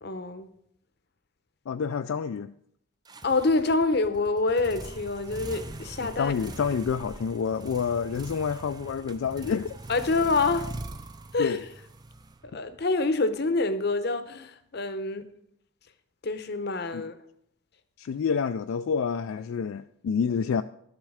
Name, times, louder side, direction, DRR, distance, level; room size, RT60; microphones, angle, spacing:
voice 1, 0.0-0.5 3.2-6.3 9.9-10.8 11.3-11.7 12.5-15.3 16.2-17.2, left 3 dB, 50° left, 0.8 m, -26 dB
voice 2, 1.7-2.5 6.0-9.8 11.4-11.6 16.9-17.1 18.0-20.6, left 6 dB, 70° left, 0.3 m, -28 dB
sound 1, 3.0-12.8, right 2 dB, 20° right, 0.4 m, -42 dB
11.5 x 7.3 x 4.9 m
head